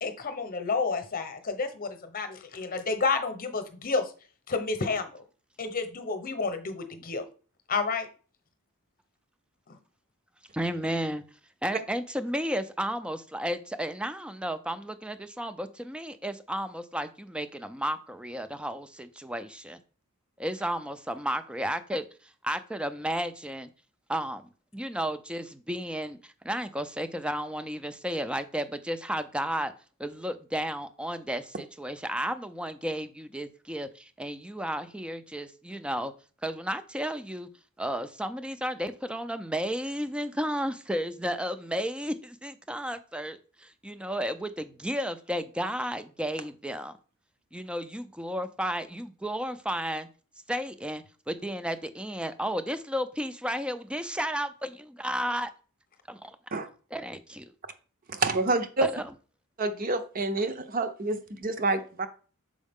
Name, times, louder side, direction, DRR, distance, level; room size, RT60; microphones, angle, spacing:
voice 1, 0.0-4.1 4.5-5.2 5.6-7.2 7.7-8.1 9.7-9.8, left 4 dB, 40° left, 0.9 m, -30 dB
voice 2, 10.5-11.2 11.6-19.8 20.4-22.1 22.4-23.7 24.1-24.4 24.7-29.7 30.0-36.1 36.4-37.5 37.8-46.9 47.5-50.1 50.5-55.5 56.1-56.4 56.9-57.5 58.8-59.0, equal, 5° right, 0.4 m, -33 dB
voice 3, 58.1-58.9 59.6-62.1, right 3 dB, 40° right, 0.7 m, -28 dB
6.3 x 4.7 x 3.6 m
head